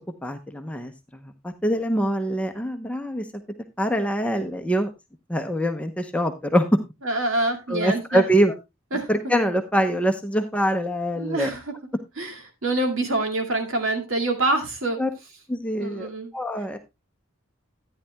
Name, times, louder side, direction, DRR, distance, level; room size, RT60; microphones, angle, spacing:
voice 1, 0.2-0.9 1.4-3.3 3.8-4.9 5.3-6.7 7.7-8.5 9.1-11.5 15.0-15.1 15.5-16.8, equal, 5° left, 0.7 m, -24 dB
voice 2, 7.0-8.2 8.9-9.1 11.2-11.7 12.2-15.0 15.8-16.3, right 2 dB, 70° right, 2.3 m, -26 dB
13.5 x 9.8 x 2.2 m
head